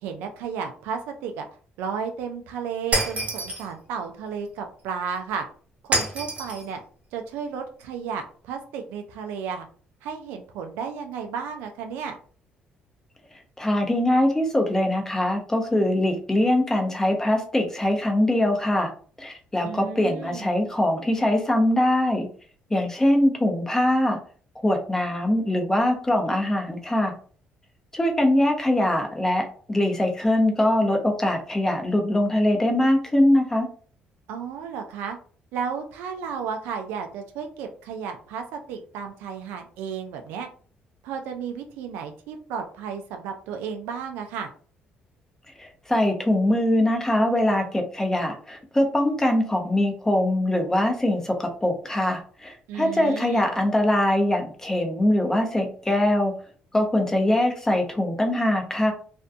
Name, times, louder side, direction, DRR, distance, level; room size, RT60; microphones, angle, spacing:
voice 1, 0.0-1.4 1.8-5.4 5.8-6.8 7.1-9.7 10.0-12.2 19.6-20.5 34.3-35.2 35.5-40.5 41.0-44.5 52.7-53.5, right 6 dB, 90° right, 5 dB, 0.3 m, -33 dB
Shatter, 2.9-3.7 5.9-6.6, right 2 dB, 45° right, 1.1 m, -26 dB
voice 2, 13.6-18.9 19.2-22.3 22.7-24.2 24.6-27.1 27.9-33.7 45.6-56.3 56.7-58.9, left 1 dB, 15° left, 3 dB, 0.7 m, -22 dB
2.5 x 2.2 x 2.5 m, 0.43 s
cardioid pair, 80°, 4 cm